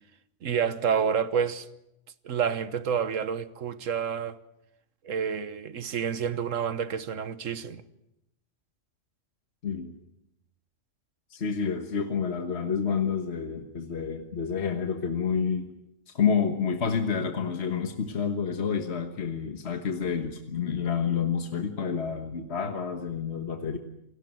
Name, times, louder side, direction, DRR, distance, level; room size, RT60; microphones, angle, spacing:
voice 1, 0.4-1.7 2.2-4.4 5.0-7.8, right 7 dB, 90° right, 1.5 m, -29 dB
voice 2, 9.6-10.0 11.3-15.7 16.1-23.8, left 6 dB, 60° left, 1.7 m, -29 dB
28.0 x 19.5 x 7.8 m
omnidirectional pair, 1.3 m